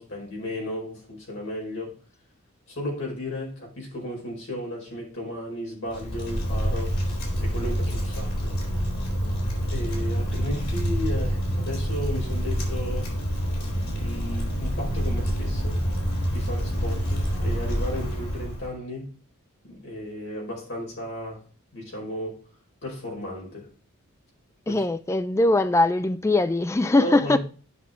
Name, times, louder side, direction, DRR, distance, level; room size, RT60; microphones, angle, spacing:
voice 1, 0.0-2.0 2.7-7.0 7.4-8.5 9.7-13.1 13.9-15.8 16.3-19.1 19.6-21.4 21.7-22.4 22.8-23.7 24.7-24.8 27.0-27.4, left 1 dB, 60° left, 4.7 m, -34 dB
Wind, 5.9-18.7, equal, 90° left, 3.9 m, -27 dB
voice 2, 24.7-27.4, left 2 dB, 15° left, 0.3 m, -21 dB
9.6 x 5.7 x 3.5 m
head